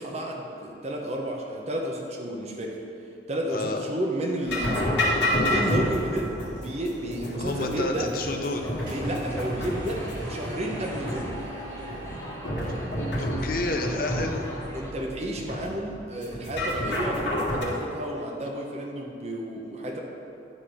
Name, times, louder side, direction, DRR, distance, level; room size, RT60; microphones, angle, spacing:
voice 1, 0.0-2.8 3.3-5.0 5.5-8.1 8.9-11.4 14.7-20.0, right 1 dB, 35° right, 0 dB, 0.7 m, -31 dB
voice 2, 3.5-3.9 7.4-8.7 13.2-14.5, left 2 dB, 50° left, 3 dB, 0.6 m, -30 dB
sound 1, 4.5-17.6, left 1 dB, 75° left, 1.7 m, -30 dB
sound 2, 6.4-13.2, right 1 dB, 80° right, 1.3 m, -42 dB
sound 3, 8.5-14.9, left 1 dB, 15° left, 0.8 m, -42 dB
9.9 x 3.3 x 5.7 m, 2.8 s
head